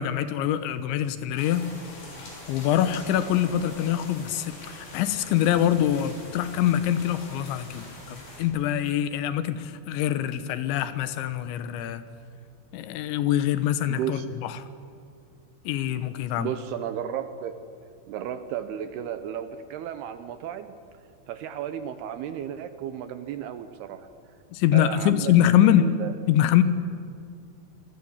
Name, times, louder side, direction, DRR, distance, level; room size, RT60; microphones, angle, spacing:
voice 1, 0.0-1.7 2.5-12.0 12.7-14.5 15.7-16.5 24.5-25.9 26.3-26.6, left 11 dB, 80° left, 12 dB, 3.3 m, -24 dB
sound 1, 1.4-8.4, left 1 dB, 55° left, 6.9 m, -44 dB
voice 2, 13.9-14.3 16.4-17.6 18.1-20.8 21.3-24.1 24.7-26.1, right 9 dB, 75° right, 10 dB, 2.5 m, -34 dB
27.5 x 21.5 x 7.3 m, 2.3 s
omnidirectional pair, 5.3 m